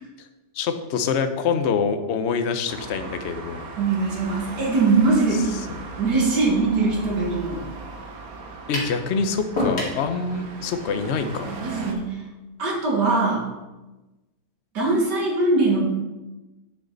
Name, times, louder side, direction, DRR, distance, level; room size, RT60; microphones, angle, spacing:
voice 1, 0.5-3.7 5.7-5.8 8.7-11.6, left 5 dB, 55° left, 8 dB, 0.8 m, -25 dB
Traffic noise roadway noise, 2.7-11.9, right 4 dB, 60° right, 1.4 m, -38 dB
voice 2, 3.8-5.5 6.0-7.6 11.5-12.2 12.6-13.5 14.7-15.8, right 3 dB, 80° right, -2 dB, 2.4 m, -21 dB
sound 1, 8.7-9.0 9.6-10.0, left 2 dB, 85° left, 2.8 m, -25 dB
9.9 x 6.1 x 3.9 m, 1.1 s
omnidirectional pair, 1.8 m